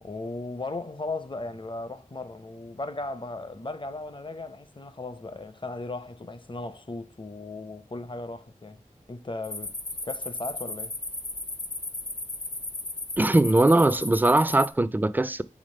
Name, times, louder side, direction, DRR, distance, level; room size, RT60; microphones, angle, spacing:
voice 1, 0.0-8.8 9.1-9.7 10.0-11.0, left 2 dB, 35° left, 0.6 m, -36 dB
sound 1, 9.4-14.7, left 2 dB, 60° left, 1.1 m, -35 dB
voice 2, 13.2-15.4, right 2 dB, 15° right, 0.3 m, -21 dB
5.1 x 3.5 x 5.3 m
wide cardioid pair, 70°, 14 cm